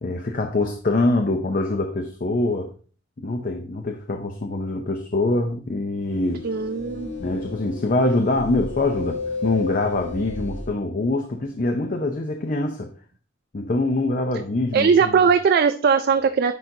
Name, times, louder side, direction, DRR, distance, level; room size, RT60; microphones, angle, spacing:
voice 1, 0.0-2.7 3.2-6.5 7.2-12.9 13.5-15.2, left 2 dB, 45° left, 4 dB, 0.6 m, -24 dB
sound 1, 6.1-10.7, left 3 dB, 75° left, 1.8 m, -33 dB
voice 2, 6.4-7.1 14.7-16.5, right 6 dB, 55° right, 9 dB, 0.3 m, -19 dB
10.5 x 3.9 x 2.7 m, 0.39 s
head